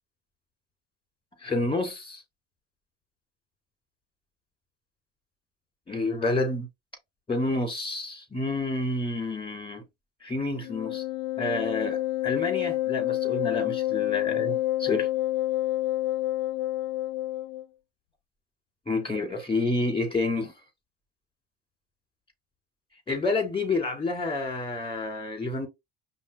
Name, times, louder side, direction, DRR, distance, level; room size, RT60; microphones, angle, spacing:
voice 1, 1.4-2.2 5.9-6.7 7.3-9.8 10.2-11.0 11.4-15.1 18.9-20.5 23.1-25.7, left 2 dB, 15° left, 2.5 m, -29 dB
Wind instrument woodwind instrument, 10.6-17.6, left 15 dB, 70° left, 0.5 m, -28 dB
5.3 x 3.0 x 3.1 m
hypercardioid pair, 65°, 37 cm